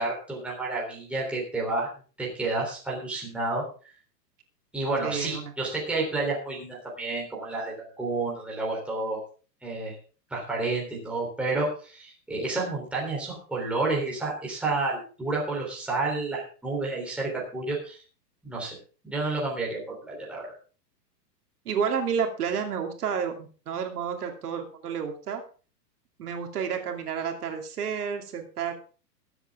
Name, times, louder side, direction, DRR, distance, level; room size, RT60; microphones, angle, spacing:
voice 1, 0.0-1.9 2.2-3.6 4.7-9.2 9.6-10.0 10.3-18.0 18.4-18.7 19.0-20.5, right 3 dB, ahead, -4 dB, 3.4 m, -30 dB
voice 2, 5.0-5.5 21.7-25.4 26.2-28.7, right 7 dB, 65° right, 4 dB, 2.7 m, -30 dB
21.0 x 8.0 x 3.6 m, 0.38 s
hypercardioid pair, 170°, 50 cm